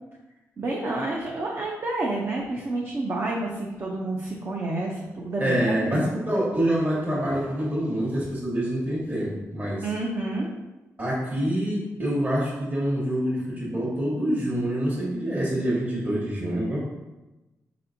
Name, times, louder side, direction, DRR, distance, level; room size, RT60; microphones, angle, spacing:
voice 1, 0.6-6.0 9.8-10.5, right 2 dB, 45° right, -2 dB, 0.6 m, -29 dB
voice 2, 5.4-9.8 11.0-16.8, right 1 dB, 30° right, -6 dB, 1.3 m, -26 dB
4.2 x 4.2 x 2.7 m, 1.1 s
cardioid pair, 90°, 6 cm